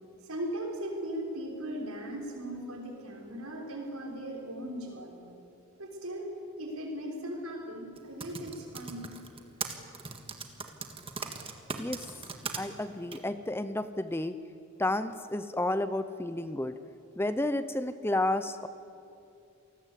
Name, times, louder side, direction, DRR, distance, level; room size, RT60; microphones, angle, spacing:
voice 1, 0.2-5.2 5.8-9.2, right 1 dB, 80° right, 0 dB, 5.9 m, -38 dB
Typing, 8.0-12.6 13.1-13.2, right 5 dB, 25° right, 1.7 m, -38 dB
voice 2, 12.6-14.3 14.8-16.8 17.2-18.7, left 1 dB, 10° left, 11 dB, 0.6 m, -31 dB
28.0 x 19.5 x 8.4 m, 2.6 s
head